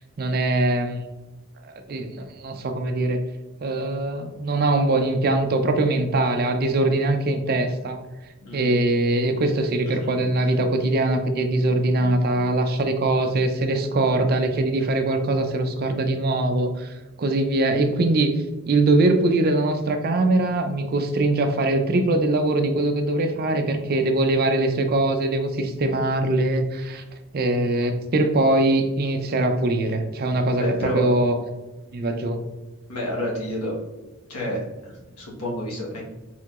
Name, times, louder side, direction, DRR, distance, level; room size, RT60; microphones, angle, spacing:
voice 1, 0.2-1.0 1.9-3.2 3.6-8.0 8.5-27.0 27.3-31.3 31.9-32.4, right 2 dB, 45° right, 6 dB, 0.4 m, -22 dB
voice 2, 8.4-8.8 9.8-10.0 30.5-31.1 32.9-33.8 34.3-36.0, left 1 dB, 85° left, -3 dB, 1.3 m, -29 dB
4.5 x 3.8 x 2.4 m, 1.1 s
head